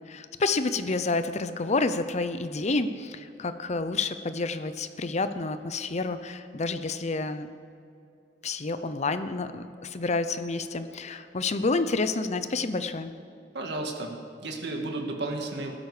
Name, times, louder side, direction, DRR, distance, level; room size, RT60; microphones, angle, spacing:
voice 1, 0.0-7.5 8.4-13.1, left 3 dB, 40° left, 11 dB, 0.7 m, -29 dB
voice 2, 13.5-14.1 14.4-15.7, right 2 dB, 65° right, 2 dB, 1.9 m, -32 dB
15.5 x 12.5 x 5.0 m, 2.6 s
head